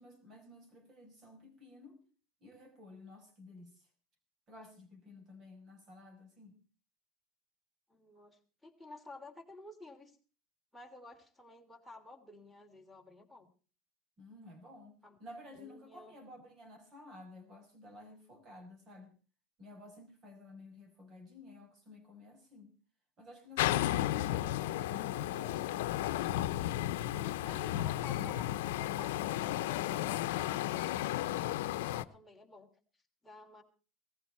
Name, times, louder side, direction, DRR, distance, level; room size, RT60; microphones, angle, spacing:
voice 1, 0.0-2.0 2.4-3.9 4.5-6.6 14.2-19.1 19.6-22.7 23.2-25.9, left 1 dB, 40° right, 6 dB, 6.0 m, -53 dB
voice 2, 7.9-10.2 10.7-13.5 15.0-15.2 15.5-16.2 24.3-24.5 27.1-32.7 33.2-33.6, left 2 dB, ahead, 0 dB, 3.0 m, -53 dB
sound 1, 23.6-32.0, left 14 dB, 85° left, 0.7 m, -33 dB
18.0 x 14.5 x 4.4 m, 0.37 s
supercardioid pair, 120°, 0 cm